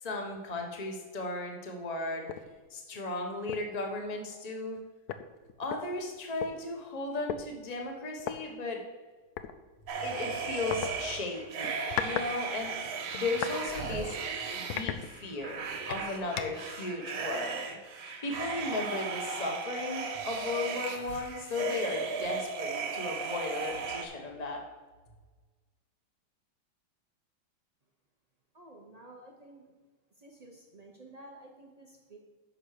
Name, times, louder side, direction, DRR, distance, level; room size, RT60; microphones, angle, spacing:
voice 1, 0.0-2.3 2.7-4.8 5.6-8.8 10.0-12.7 13.1-14.2 14.5-15.6 15.9-17.6 18.2-24.6, left 3 dB, 25° left, 2 dB, 1.0 m, -35 dB
sound 1, 2.3-2.5 2.9-3.1 3.5-3.8 4.7-4.8 5.1-6.5 7.3-7.4 8.2-8.4 9.4-9.5 10.7-10.9 11.6-12.3 12.6-13.6 14.1-14.2 14.7-15.5 15.9-16.7, left 9 dB, 80° left, 0.8 m, -36 dB
sound 2, 9.9-24.1, right 5 dB, 80° right, 1.8 m, -36 dB
voice 2, 28.5-29.6 30.2-32.2, right 1 dB, 60° right, 0 dB, 0.4 m, -52 dB
6.6 x 5.6 x 6.5 m, 1.4 s
omnidirectional pair, 2.2 m